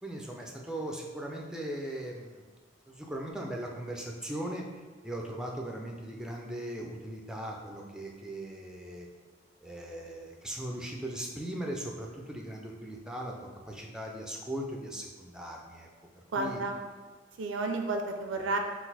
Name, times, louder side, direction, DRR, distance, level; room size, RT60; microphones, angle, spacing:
voice 1, 0.0-2.5 2.9-4.6 5.0-9.1 9.6-15.9 16.1-16.6, right 1 dB, 5° right, 0 dB, 0.4 m, -39 dB
voice 2, 16.3-16.8 17.4-18.6, right 3 dB, 75° right, 4 dB, 0.4 m, -31 dB
4.0 x 2.4 x 4.0 m, 1.4 s
head